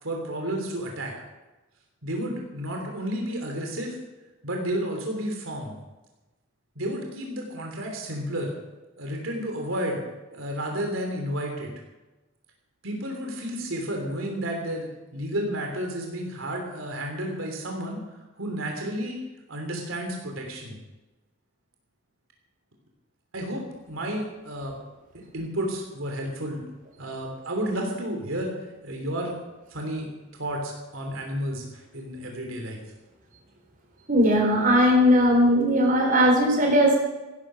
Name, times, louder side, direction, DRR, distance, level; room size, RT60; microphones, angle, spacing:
voice 1, 0.0-1.1 2.0-4.0 4.4-5.7 6.7-8.5 9.0-10.0 10.3-11.7 12.8-18.0 18.4-19.2 19.5-20.8 23.3-24.8 25.1-26.6 27.0-28.5 28.8-29.4 29.7-32.8, right 1 dB, 85° right, 2 dB, 3.2 m, -31 dB
voice 2, 34.1-37.0, equal, 45° right, 0 dB, 4.1 m, -19 dB
15.5 x 12.0 x 6.3 m, 1.1 s
head